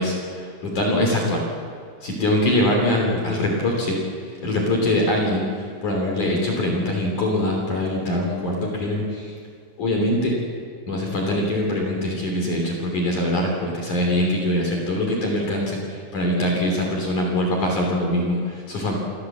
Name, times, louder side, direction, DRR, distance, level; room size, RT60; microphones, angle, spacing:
voice 1, 0.0-1.5 2.0-9.3 9.8-10.3 10.9-18.9, left 1 dB, 45° left, -1 dB, 4.3 m, -23 dB
28.5 x 14.5 x 7.5 m, 2.2 s
omnidirectional pair, 5.5 m